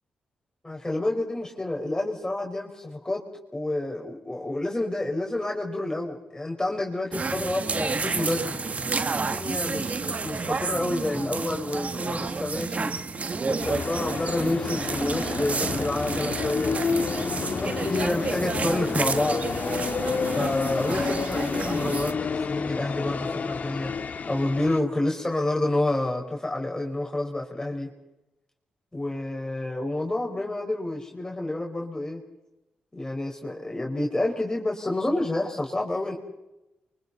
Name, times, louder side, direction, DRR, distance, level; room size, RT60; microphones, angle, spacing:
voice 1, 0.6-3.2 3.5-8.6 9.1-12.9 13.4-16.7 17.3-19.4 20.3-23.9 24.3-27.9 28.9-32.2 32.9-36.2, left 1 dB, 20° left, 1 dB, 4.6 m, -29 dB
sound 1, 7.1-22.1, right 4 dB, 45° right, 1.3 m, -30 dB
sound 2, 13.6-24.8, left 5 dB, 55° left, 1.5 m, -30 dB
29.0 x 24.5 x 4.1 m, 0.97 s
supercardioid pair, 50°, 3 cm